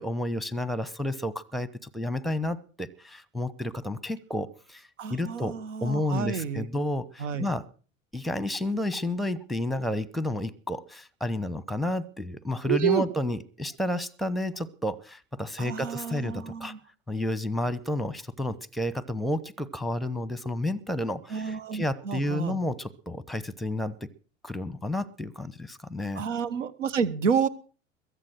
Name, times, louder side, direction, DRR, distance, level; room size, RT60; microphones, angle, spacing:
voice 1, 0.0-7.6 8.1-16.7 17.1-23.9 24.4-26.2, left 1 dB, ahead, 19 dB, 1.0 m, -31 dB
voice 2, 5.0-6.7 7.2-7.5 12.7-13.1 15.6-16.8 21.3-22.6 26.1-27.5, right 7 dB, 70° right, 19 dB, 1.3 m, -29 dB
22.0 x 8.2 x 6.3 m, 0.40 s
figure-of-eight pair, 75°, 39 cm